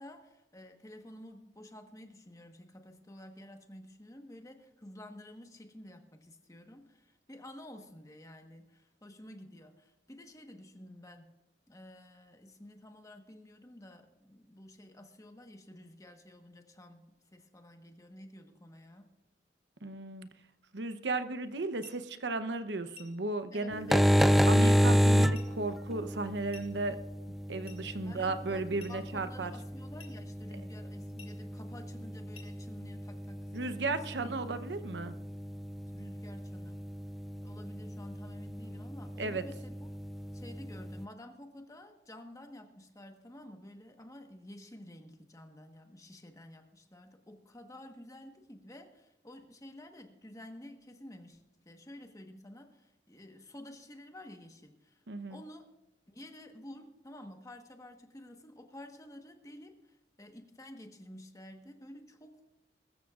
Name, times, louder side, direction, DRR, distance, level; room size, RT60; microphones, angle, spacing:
voice 1, 0.0-11.3 11.7-19.1 23.5-24.0 27.9-34.1 35.9-36.8 37.4-39.7 40.3-55.0 55.3-55.7 56.1-62.4, left 1 dB, 20° left, 5 dB, 1.3 m, -51 dB
voice 2, 19.8-20.3 20.7-24.0 24.5-27.0 27.5-29.5 33.5-35.2 39.2-39.4 55.1-55.4, right 3 dB, 80° right, 10 dB, 0.8 m, -35 dB
sound 1, 21.8-22.1 23.0-23.2 24.2-24.4 25.3-25.6 26.5-26.8 27.7-27.9 28.8-29.1 30.0-30.2 31.2-31.4 32.3-32.6, left 5 dB, 35° left, 2.9 m, -53 dB
sound 2, 23.7-41.0, equal, ahead, 0.3 m, -31 dB
21.5 x 13.5 x 2.5 m, 0.93 s
head